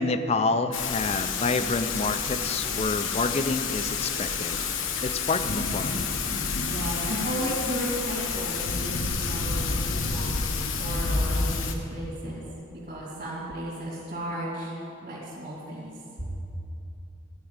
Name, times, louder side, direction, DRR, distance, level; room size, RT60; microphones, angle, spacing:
voice 1, 0.0-4.7 5.0-6.1, left 3 dB, 30° left, 10 dB, 0.4 m, -28 dB
Thunder / Rain, 0.7-11.7, left 4 dB, 80° left, 0.9 m, -29 dB
voice 2, 6.7-12.4 12.7-14.7 15.0-15.9 16.2-16.3, right 1 dB, 50° right, -9 dB, 2.6 m, -34 dB
14.0 x 4.9 x 8.8 m, 2.7 s
head